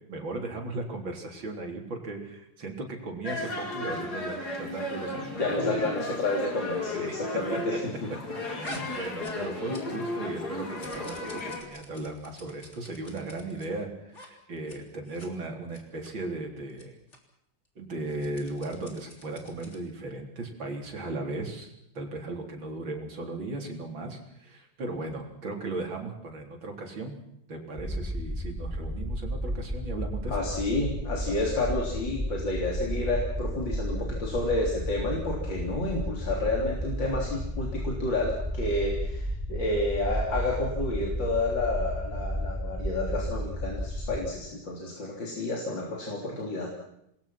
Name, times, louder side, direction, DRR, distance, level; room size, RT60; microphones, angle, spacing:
voice 1, 0.1-5.9 6.9-7.4 8.4-17.0 17.8-27.1 27.5-30.4, right 2 dB, 80° right, 2 dB, 4.5 m, -37 dB
sound 1, 3.2-11.6, left 2 dB, 55° left, 4.4 m, -35 dB
voice 2, 5.4-8.1 8.7-9.0 30.3-46.7, left 2 dB, 70° left, -1 dB, 4.3 m, -30 dB
sound 2, 8.6-10.1 10.4-13.7 14.1-14.3 14.6-14.8 15.1-15.3 15.7-16.1 16.7-16.8 17.1-17.2 18.0-19.9, left 1 dB, 35° left, 3.9 m, -47 dB
sound 3, 27.8-44.3, equal, ahead, 2.7 m, -33 dB
27.5 x 20.5 x 5.9 m, 0.81 s
omnidirectional pair, 2.1 m